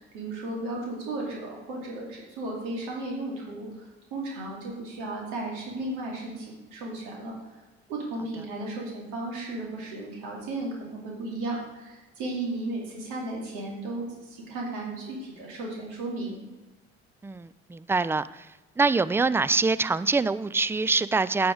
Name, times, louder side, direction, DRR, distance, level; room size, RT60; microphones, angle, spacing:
voice 1, 0.0-7.4 7.9-16.4, right 2 dB, 75° right, -2 dB, 2.5 m, -35 dB
voice 2, 17.2-18.5 18.8-21.5, right 4 dB, 10° right, 16 dB, 0.3 m, -25 dB
9.1 x 6.3 x 4.8 m, 1.1 s
hypercardioid pair, 50°, 31 cm